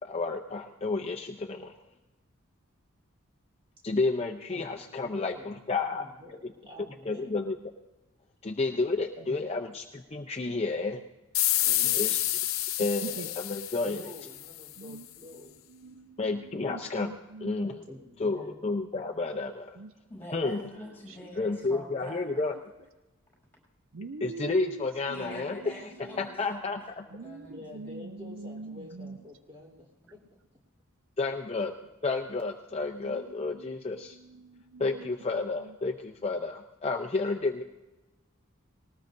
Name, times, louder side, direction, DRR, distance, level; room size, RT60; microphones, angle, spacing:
voice 1, 0.0-1.7 3.8-6.1 7.0-7.6 8.4-11.0 11.9-12.2 12.8-14.0 16.2-17.1 17.4-17.8 18.2-19.7 20.3-20.6 21.4-22.5 24.2-25.7 26.2-26.8 31.2-31.7 32.0-34.2 34.8-37.6, left 3 dB, 30° left, 3 dB, 0.6 m, -31 dB
voice 2, 4.5-5.5 5.9-7.4 9.2-9.5 11.6-12.3 13.8-15.5 17.9-18.7 27.5-30.2, left 1 dB, 25° right, 0 dB, 3.7 m, -48 dB
sound 1, 11.3-14.7, left 14 dB, 80° left, 0.6 m, -29 dB
voice 3, 12.8-13.3 14.8-15.0 15.7-17.6 19.8-20.0 21.1-21.2 22.3-22.4 23.9-24.8 25.1-25.8 27.1-29.2 33.0-33.2 33.5-35.7, right 4 dB, 65° right, 10 dB, 0.6 m, -44 dB
voice 4, 20.1-22.5 25.1-27.6 27.8-28.0, equal, 10° left, -3 dB, 6.5 m, -45 dB
20.5 x 18.5 x 2.6 m, 1.1 s
head